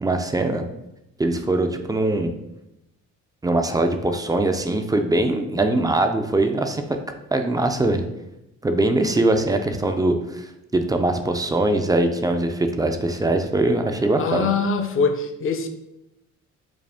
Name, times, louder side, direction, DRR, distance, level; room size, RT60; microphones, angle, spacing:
voice 1, 0.0-0.6 1.2-2.3 3.4-6.8 7.3-8.0 8.6-10.4 10.7-14.5, right 2 dB, 15° right, 6 dB, 0.4 m, -22 dB
voice 2, 14.2-15.7, left 4 dB, 45° left, 6 dB, 0.5 m, -23 dB
4.9 x 2.0 x 3.4 m, 0.89 s
cardioid pair, 90°, 30 cm